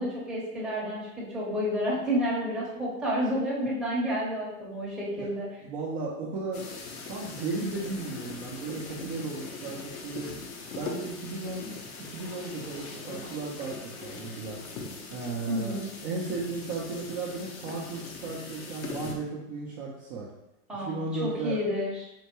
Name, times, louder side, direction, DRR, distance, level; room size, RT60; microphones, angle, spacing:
voice 1, 0.0-5.5 15.5-15.9 20.7-22.0, equal, ahead, -7 dB, 0.8 m, -30 dB
voice 2, 5.6-6.6 7.1-10.3 10.7-11.7 12.1-14.6 15.1-15.8 16.0-20.3 20.8-21.6, right 3 dB, 30° right, -4 dB, 0.5 m, -35 dB
sound 1, 6.5-19.1, left 4 dB, 65° left, 0.8 m, -41 dB
4.4 x 2.1 x 2.9 m, 0.88 s
hypercardioid pair, 120°, 45 cm